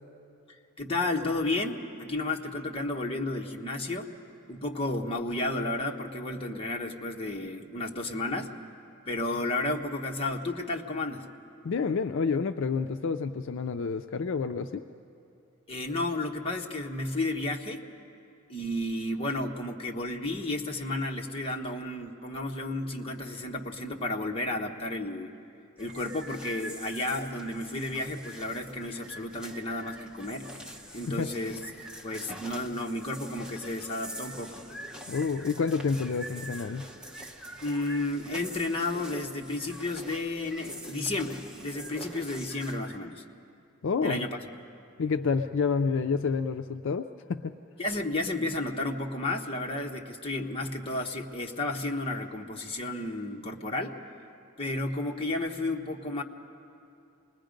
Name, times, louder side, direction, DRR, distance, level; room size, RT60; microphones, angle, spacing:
voice 1, 0.8-4.1 4.5-8.5 9.1-11.2 15.7-17.8 18.5-25.3 25.8-30.5 30.9-31.6 32.0-34.6 37.6-43.2 44.0-44.4 47.8-54.0 54.6-56.2, left 2 dB, 25° left, 0 dB, 1.1 m, -32 dB
voice 2, 11.6-14.8 31.1-31.3 35.1-36.8 43.8-44.3 45.0-47.5, left 5 dB, 60° left, 8 dB, 0.4 m, -29 dB
sound 1, 25.8-43.0, right 1 dB, 5° right, 1.0 m, -44 dB
27.5 x 20.5 x 5.2 m, 2.7 s
head